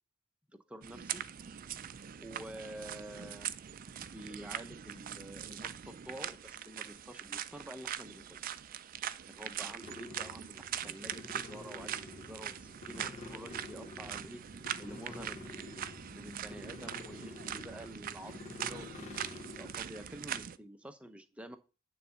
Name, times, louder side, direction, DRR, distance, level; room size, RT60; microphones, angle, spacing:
voice 1, 0.5-1.3 2.2-3.5 4.0-8.4 9.3-14.4 14.8-18.9 19.6-21.6, right 1 dB, 5° right, 7 dB, 0.7 m, -49 dB
sound 1, 0.8-20.6, right 9 dB, 40° right, 0.4 m, -42 dB
sound 2, 9.8-19.8, left 3 dB, 35° left, 0.8 m, -49 dB
9.3 x 3.9 x 7.1 m, 0.33 s
head